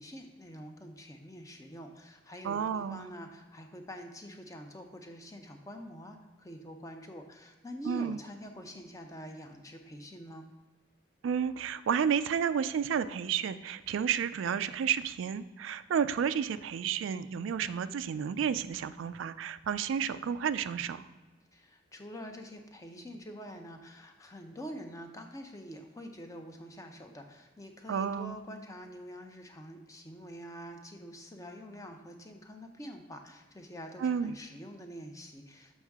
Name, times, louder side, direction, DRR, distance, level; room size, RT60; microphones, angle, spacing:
voice 1, 0.0-10.5 21.5-35.8, equal, 15° left, 4 dB, 0.6 m, -46 dB
voice 2, 2.4-3.0 7.9-8.2 11.2-21.0 27.9-28.4 34.0-34.4, right 7 dB, 85° right, 13 dB, 0.3 m, -31 dB
7.3 x 5.4 x 3.5 m, 1.3 s
head